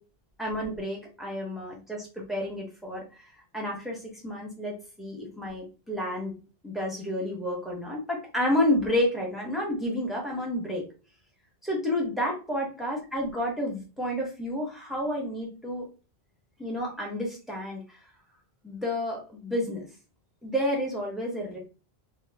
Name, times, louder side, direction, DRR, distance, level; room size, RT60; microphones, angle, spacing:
voice 1, 0.4-6.4 6.6-10.8 11.6-15.8 16.6-18.0 18.6-19.9 20.4-21.6, left 1 dB, ahead, -2 dB, 1.2 m, -30 dB
3.1 x 2.6 x 3.4 m, 0.34 s
omnidirectional pair, 1.0 m